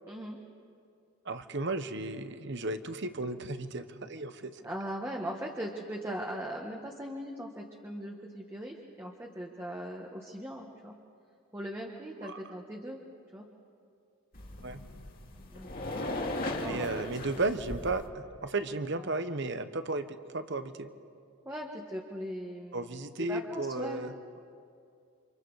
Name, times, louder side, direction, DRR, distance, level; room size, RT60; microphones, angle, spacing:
voice 1, 0.1-0.4 4.6-10.9 11.5-13.0 13.3-13.5 15.5-15.7 16.5-17.1 19.0-19.1 21.4-24.0, equal, 10° right, -1 dB, 1.4 m, -39 dB
voice 2, 1.2-4.6 12.2-12.4 14.6-14.8 16.6-20.9 22.7-24.1, right 2 dB, 55° right, 10 dB, 1.1 m, -34 dB
sound 1, 14.3-18.1, left 1 dB, 40° left, 2.2 m, -37 dB
30.0 x 26.5 x 4.9 m, 2.4 s
head